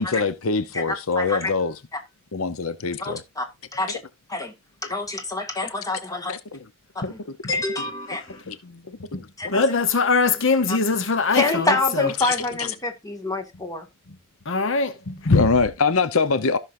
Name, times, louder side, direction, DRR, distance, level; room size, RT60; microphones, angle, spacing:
voice 1, 0.0-1.7 2.3-3.2 6.3-6.6 7.0-7.1 8.5-9.3 12.2-12.3 15.3-16.6, left 4 dB, 90° left, 0.8 m, -24 dB
voice 2, 1.2-1.5 3.0-3.5 3.7-4.0 4.3-4.5 4.8-6.3 7.0-7.2 7.5-8.4 9.4-9.6 10.7-10.8 11.3-13.9, left 2 dB, 15° left, 1.9 m, -26 dB
voice 3, 9.5-12.1 14.5-15.5, left 4 dB, 65° left, 1.0 m, -21 dB
15.0 x 6.3 x 2.6 m
head